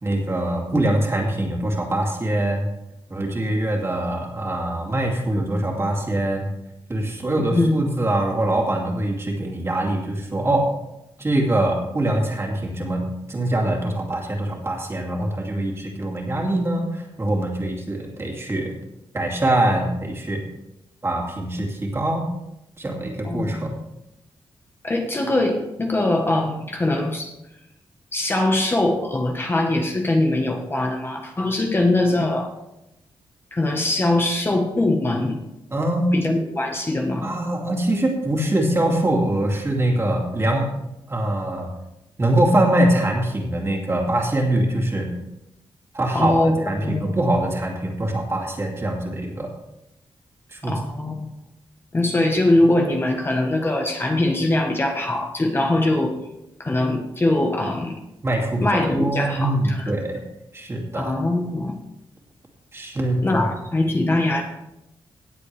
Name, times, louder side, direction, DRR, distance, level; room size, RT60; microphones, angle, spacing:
voice 1, 0.0-2.7 3.1-6.5 6.9-10.7 11.2-18.7 19.1-20.4 21.0-22.3 22.8-23.7 35.7-36.2 37.2-40.7 41.1-41.7 42.2-45.1 45.9-46.4 46.6-49.5 50.5-50.8 58.2-60.2 60.5-61.1 62.7-63.4, right 1 dB, 30° right, 0 dB, 2.6 m, -23 dB
voice 2, 7.5-7.8 23.2-23.8 24.8-27.3 28.1-32.5 33.5-35.4 36.1-37.3 46.1-47.2 50.6-51.3 51.9-56.2 56.6-57.9 58.6-59.8 60.9-61.7 63.2-64.4, left 2 dB, 25° left, 2 dB, 1.3 m, -22 dB
18.0 x 7.6 x 3.4 m, 0.88 s
wide cardioid pair, 110°, 9 cm